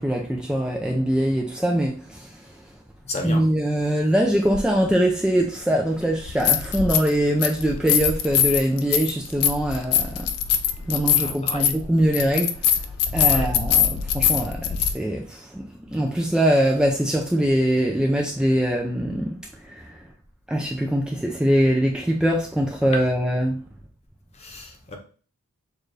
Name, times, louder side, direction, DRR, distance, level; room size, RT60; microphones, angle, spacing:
voice 1, 0.0-2.6 3.2-10.3 10.9-20.0 20.5-23.6, equal, 5° right, 0.4 m, -23 dB
voice 2, 3.0-3.4 11.1-11.8 13.2-13.5 22.8-23.2 24.4-25.0, left 1 dB, 30° left, 0.9 m, -33 dB
sound 1, 4.5-4.6 6.2-7.1 7.4-14.9, left 8 dB, 90° left, 0.5 m, -22 dB
6.5 x 2.6 x 3.2 m
head